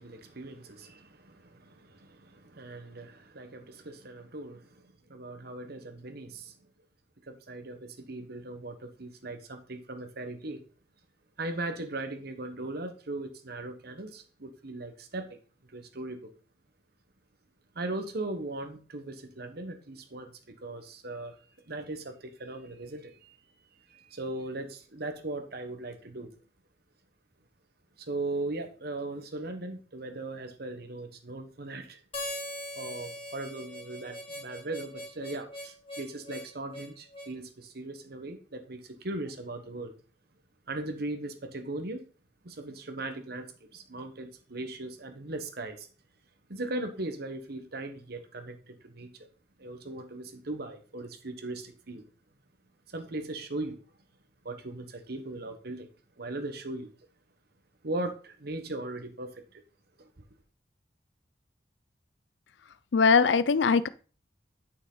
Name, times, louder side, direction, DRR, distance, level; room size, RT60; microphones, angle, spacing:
voice 1, 0.0-6.5 7.2-10.6 11.4-15.4 15.7-16.3 17.7-21.4 21.7-23.4 23.9-26.3 28.0-32.0 32.8-39.9 40.7-42.0 42.4-45.9 46.5-49.1 49.6-52.0 52.9-53.8 54.4-55.9 56.2-56.9 57.8-59.6 60.0-60.1, right 2 dB, 60° right, 1.2 m, -38 dB
Harmonica, 32.1-37.4, left 1 dB, 30° left, 2.0 m, -41 dB
voice 2, 62.9-63.9, left 5 dB, 80° left, 0.5 m, -21 dB
9.1 x 6.1 x 3.9 m
head